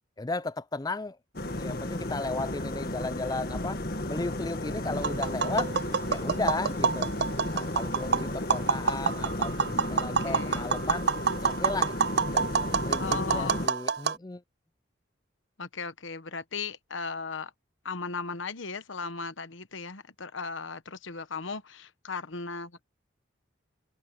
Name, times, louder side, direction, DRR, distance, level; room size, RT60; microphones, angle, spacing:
voice 1, 0.2-1.2 1.6-3.8 4.1-5.7 6.1-7.1 7.5-11.1 11.4-12.1 12.3-14.4, left 3 dB, 20° left, 0.4 m, -35 dB
sound 1, 1.3-13.7, left 1 dB, 50° left, 1.9 m, -34 dB
Tap, 4.9-14.2, right 6 dB, 55° right, 0.5 m, -28 dB
voice 2, 10.2-10.7 13.0-13.7 15.6-17.5 17.8-22.9, left 4 dB, 75° left, 1.1 m, -37 dB
head